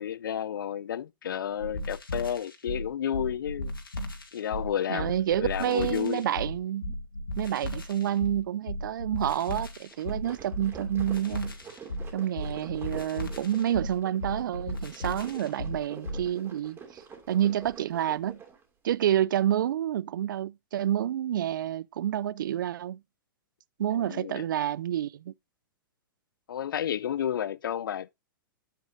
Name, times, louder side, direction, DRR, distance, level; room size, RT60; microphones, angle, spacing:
voice 1, 0.0-3.7 4.3-5.1 5.4-6.2 23.9-24.5 26.5-28.1, left 9 dB, 75° left, 0.4 m, -31 dB
sound 1, 1.6-16.3, equal, 90° left, 2.3 m, -36 dB
voice 2, 4.9-6.9 7.4-11.5 12.1-17.0 17.3-18.4 18.8-23.0 23.8-25.3, right 11 dB, 65° right, 0.4 m, -29 dB
sound 2, 9.7-18.6, right 6 dB, 20° right, 2.8 m, -47 dB
9.3 x 8.1 x 2.6 m
hypercardioid pair, 110°, 11 cm